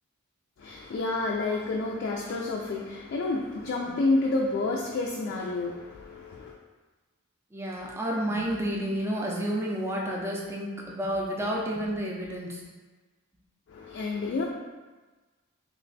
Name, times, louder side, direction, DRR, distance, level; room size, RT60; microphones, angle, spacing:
voice 1, 0.6-6.6 13.7-14.5, left 3 dB, 55° left, -2 dB, 0.3 m, -29 dB
voice 2, 7.5-12.6, equal, 10° right, -2 dB, 0.4 m, -30 dB
3.2 x 2.2 x 3.8 m, 1.3 s
head